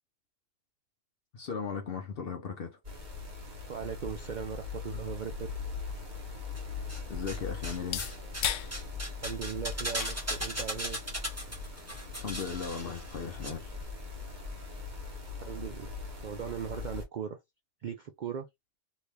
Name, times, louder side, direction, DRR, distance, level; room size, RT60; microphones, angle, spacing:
voice 1, 1.3-2.8 7.1-8.1 12.2-13.7, left 6 dB, 60° left, 0.7 m, -37 dB
sound 1, 2.8-17.0, left 4 dB, 35° right, 1.4 m, -41 dB
voice 2, 3.7-5.5 9.2-11.0 15.4-16.0 16.2-17.4 17.8-18.5, right 8 dB, 65° right, 0.4 m, -38 dB
sound 2, 5.8-13.4, left 9 dB, 75° left, 0.9 m, -42 dB
sound 3, 6.6-7.4 7.6-13.5 13.8-13.9, right 1 dB, 10° right, 1.2 m, -38 dB
2.9 x 2.7 x 3.3 m
omnidirectional pair, 1.3 m